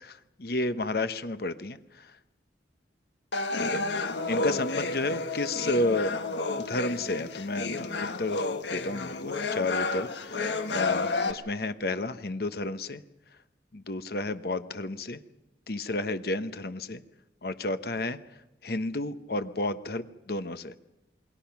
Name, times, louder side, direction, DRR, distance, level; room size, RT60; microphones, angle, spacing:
voice 1, 0.4-2.1 3.6-3.8 4.2-6.2 6.7-7.9 8.2-8.5 8.7-13.0 13.7-15.2 15.7-17.0 17.4-18.2 18.6-20.8, left 2 dB, 55° left, 11 dB, 1.0 m, -31 dB
sound 1, 3.3-11.3, left 3 dB, 75° left, 1.5 m, -31 dB
28.0 x 21.5 x 5.9 m, 0.98 s
head